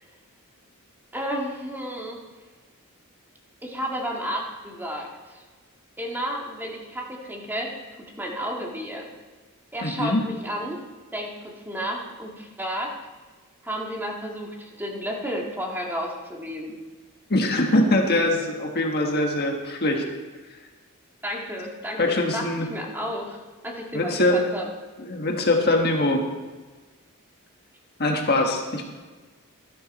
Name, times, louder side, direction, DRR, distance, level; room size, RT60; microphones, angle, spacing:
voice 1, 1.1-2.2 3.6-5.4 6.0-7.7 8.0-9.1 9.7-10.8 11.1-12.9 13.6-16.8 21.2-24.7, equal, 10° right, -1 dB, 1.7 m, -32 dB
voice 2, 9.8-10.2 17.3-20.0 22.0-22.7 23.9-24.4 25.0-26.2 28.0-28.9, left 1 dB, 45° left, 2 dB, 1.4 m, -22 dB
13.0 x 11.5 x 4.2 m, 1.3 s
head